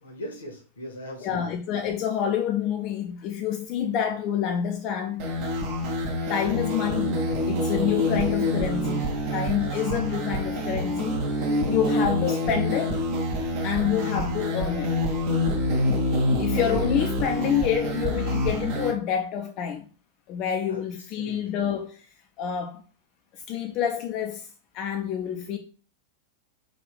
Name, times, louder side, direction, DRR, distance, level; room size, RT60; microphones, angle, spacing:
voice 1, 0.0-1.5 9.6-10.0 20.7-20.8 21.2-21.4, equal, 70° left, 0.9 m, -39 dB
voice 2, 1.2-5.3 6.3-7.2 7.5-9.1 9.3-13.0 13.6-14.9 16.4-19.9 20.3-22.1 22.4-22.8 23.3-25.6, left 9 dB, 40° left, 0.3 m, -28 dB
sound 1, 5.2-18.9, left 1 dB, 45° right, 0.7 m, -26 dB
3.6 x 2.4 x 3.3 m
figure-of-eight pair, 90°, 0 cm